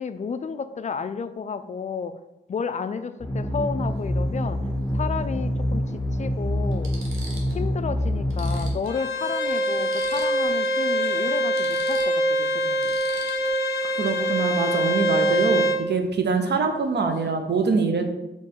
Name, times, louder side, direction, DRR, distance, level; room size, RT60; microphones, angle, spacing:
voice 1, 0.0-2.2 2.5-4.6 4.9-6.9 7.5-13.0 16.5-16.6, left 5 dB, 35° left, 11 dB, 0.4 m, -32 dB
sound 1, 3.2-8.8, equal, 10° left, 1.4 m, -26 dB
sound 2, 3.8-4.0 5.4-5.5 6.2-6.3 6.7-7.7 8.0-8.1 8.3-10.6 10.9-11.0 11.3-13.7 16.3-16.6 16.8-17.3, right 2 dB, 85° right, 0.8 m, -44 dB
Bowed string instrument, 8.9-15.8, equal, 55° left, 0.8 m, -24 dB
voice 2, 14.0-18.1, right 4 dB, 55° right, 5 dB, 0.7 m, -24 dB
4.2 x 3.1 x 3.6 m, 0.96 s
cardioid pair, 55°, 20 cm